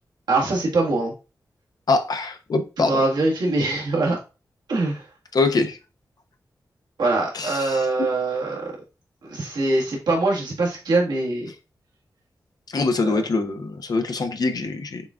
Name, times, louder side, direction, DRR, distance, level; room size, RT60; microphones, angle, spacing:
voice 1, 0.3-1.1 2.8-4.2 4.7-5.0 7.0-8.7 9.3-11.5 13.0-13.2, right 2 dB, 90° right, 1.5 m, -23 dB
voice 2, 1.9-3.0 5.3-5.8 7.3-7.9 12.7-15.0, left 3 dB, 65° left, 0.7 m, -23 dB
6.8 x 2.5 x 2.3 m
cardioid pair, 50°, 7 cm